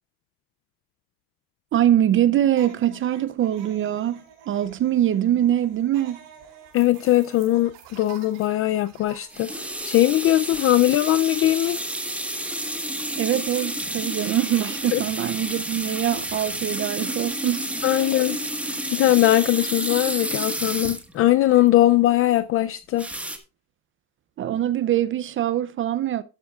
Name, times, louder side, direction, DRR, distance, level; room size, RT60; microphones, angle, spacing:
voice 1, 1.7-6.2 13.2-18.0 24.4-26.2, right 11 dB, 30° right, 0.5 m, -23 dB
sound 1, 2.5-9.4, right 8 dB, 65° right, 5.4 m, -48 dB
voice 2, 6.7-11.8 14.9-15.0 17.8-23.1, left 14 dB, 35° left, 0.4 m, -20 dB
sound 2, 9.3-21.7 23.0-23.4, right 1 dB, 5° right, 1.4 m, -30 dB
12.0 x 11.5 x 2.4 m
supercardioid pair, 125°, 41 cm